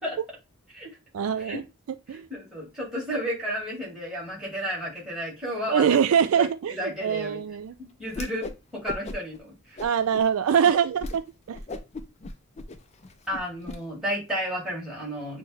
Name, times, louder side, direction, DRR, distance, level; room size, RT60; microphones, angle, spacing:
voice 1, 1.1-1.6 2.1-2.3 5.7-7.7 9.8-11.6, right 8 dB, 65° right, 0.3 m, -24 dB
voice 2, 2.1-6.0 6.4-7.4 8.0-9.8 13.3-15.4, equal, 5° right, 2.0 m, -32 dB
Whoosh swoosh swish, 8.1-8.6 8.9-9.4 9.8-10.3 10.6-10.7 11.0-11.2 11.5-13.8, left 2 dB, 30° left, 0.4 m, -37 dB
6.1 x 2.1 x 3.4 m
head